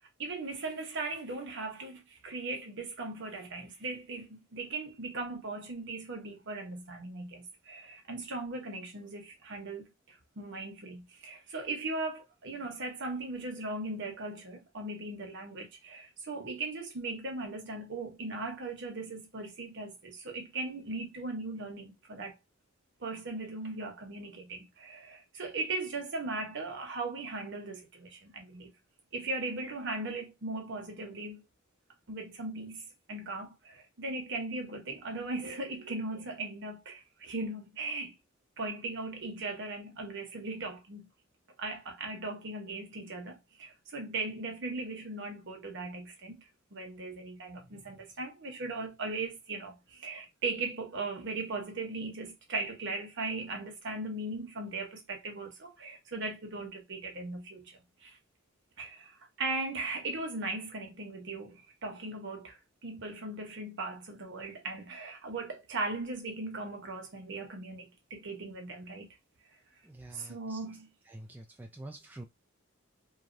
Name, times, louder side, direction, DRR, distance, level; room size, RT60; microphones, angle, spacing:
voice 1, 0.2-22.4 23.0-28.7 29.1-31.4 32.1-38.2 38.6-41.1 41.6-46.4 46.7-58.2 58.8-69.1 70.1-70.9, right 3 dB, 60° right, 1.0 m, -38 dB
voice 2, 69.8-70.6 71.1-72.2, right 1 dB, 10° right, 0.3 m, -47 dB
3.1 x 2.4 x 2.5 m
head